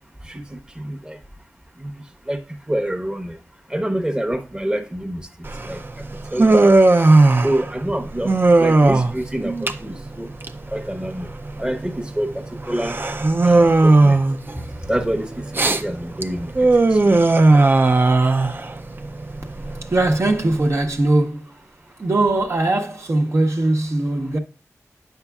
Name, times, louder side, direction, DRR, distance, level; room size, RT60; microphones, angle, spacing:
voice 1, 0.2-1.2 1.8-3.4 3.7-6.0 6.3-6.7 7.4-10.3 10.7-11.3 11.6-13.0 13.4-14.2 14.6-17.1, right 1 dB, 15° right, 0.9 m, -27 dB
Human voice, 5.4-20.7, right 2 dB, 40° right, 0.6 m, -17 dB
voice 2, 19.8-21.5 22.0-24.4, right 2 dB, 60° right, 1.0 m, -20 dB
7.9 x 5.5 x 2.3 m
cardioid pair, 55°, 6 cm